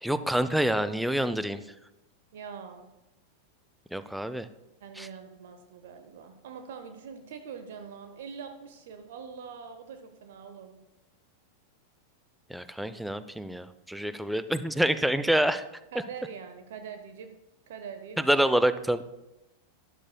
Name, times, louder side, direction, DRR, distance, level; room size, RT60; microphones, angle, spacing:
voice 1, 0.0-1.6 3.9-4.5 5.0-5.1 12.5-15.6 18.2-19.0, right 1 dB, ahead, 12 dB, 0.4 m, -27 dB
voice 2, 2.3-2.9 4.8-10.8 15.9-17.3 17.7-18.4, right 6 dB, 55° right, 7 dB, 0.7 m, -43 dB
12.0 x 11.0 x 2.2 m, 0.95 s
figure-of-eight pair, 90°, 0 cm